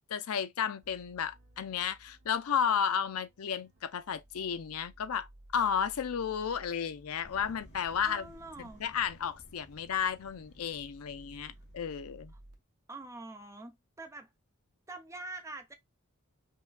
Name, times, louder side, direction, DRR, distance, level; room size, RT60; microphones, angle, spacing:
voice 1, 0.1-5.3 5.5-8.3 8.6-12.3, left 7 dB, 70° left, 0.5 m, -33 dB
sound 1, 0.8-12.5, right 1 dB, 80° right, 1.0 m, -58 dB
sound 2, 7.2-12.6, equal, 50° left, 1.1 m, -57 dB
voice 2, 8.0-8.8 12.9-14.3 14.9-15.7, right 2 dB, 15° right, 0.5 m, -44 dB
5.4 x 2.2 x 2.3 m
head